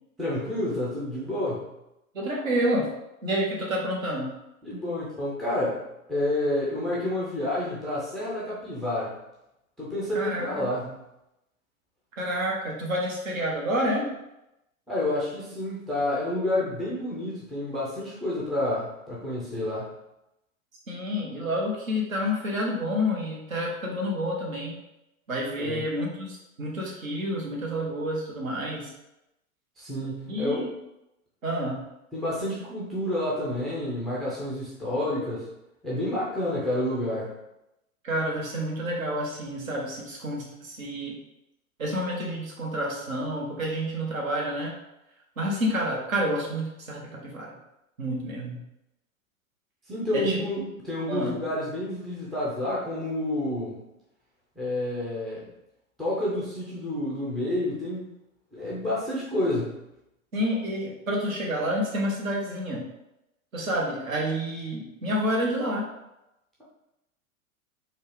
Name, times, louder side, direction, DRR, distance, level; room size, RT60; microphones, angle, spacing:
voice 1, 0.2-1.7 4.6-5.8 6.1-9.1 9.8-10.9 14.9-19.9 25.6-25.8 29.8-30.7 32.1-35.5 35.8-37.3 49.9-53.8 54.6-55.5 56.0-58.0 58.5-59.7, left 1 dB, ahead, -8 dB, 0.3 m, -29 dB
voice 2, 2.1-2.9 3.2-4.3 10.1-10.7 12.2-14.1 20.9-24.8 25.3-28.9 30.3-30.7 31.4-31.8 38.0-41.1 41.8-44.7 45.4-47.5 48.0-48.6 50.1-50.4 51.1-51.3 60.3-62.8 63.5-65.8, equal, 75° right, -1 dB, 1.2 m, -29 dB
4.2 x 2.3 x 3.2 m, 0.88 s
figure-of-eight pair, 95°, 41 cm